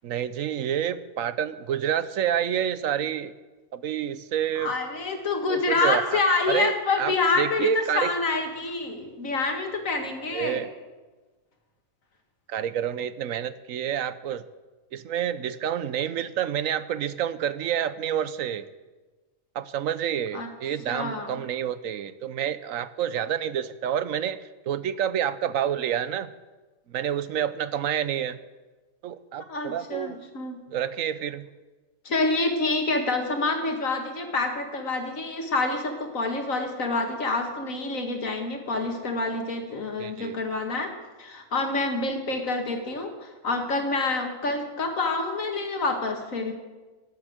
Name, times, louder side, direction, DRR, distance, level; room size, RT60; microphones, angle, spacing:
voice 1, 0.0-3.3 3.7-4.7 5.5-6.2 6.5-8.1 10.3-10.7 12.5-14.4 14.9-18.7 19.5-24.4 24.7-26.3 26.9-28.4 29.0-30.2 30.7-31.5 40.0-40.4, right 9 dB, 75° right, 15 dB, 1.1 m, -28 dB
voice 2, 4.6-10.6 20.3-20.5 20.9-21.3 29.5-30.6 32.1-40.9 41.2-46.5, left 3 dB, 75° left, 4 dB, 2.3 m, -27 dB
18.5 x 8.1 x 7.9 m, 1.2 s
omnidirectional pair, 1.4 m